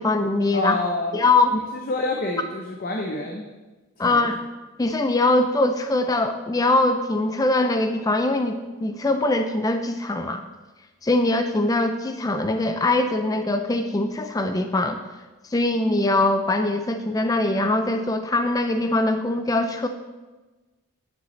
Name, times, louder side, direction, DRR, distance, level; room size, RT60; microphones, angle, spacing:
voice 1, 0.0-0.8 1.1-1.5 4.0-4.4 4.8-10.4 11.0-15.0 15.5-19.9, left 2 dB, 15° left, 6 dB, 0.3 m, -22 dB
voice 2, 0.5-1.2 1.5-3.4 4.0-4.3, left 2 dB, 40° left, 1 dB, 0.7 m, -28 dB
9.6 x 6.9 x 3.2 m, 1.2 s
head